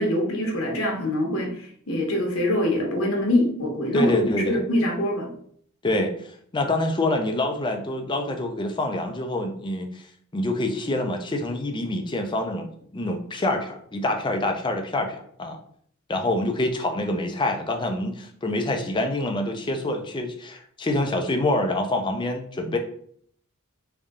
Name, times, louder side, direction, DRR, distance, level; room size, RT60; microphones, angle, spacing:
voice 1, 0.0-1.5 1.9-4.1 4.5-5.3, left 1 dB, 75° left, 1 dB, 1.0 m, -24 dB
voice 2, 3.9-4.6 5.8-6.1 6.5-10.0 10.3-12.7 12.9-15.6 16.1-22.8, left 1 dB, 20° left, 5 dB, 0.5 m, -26 dB
3.4 x 2.7 x 3.6 m, 0.63 s
head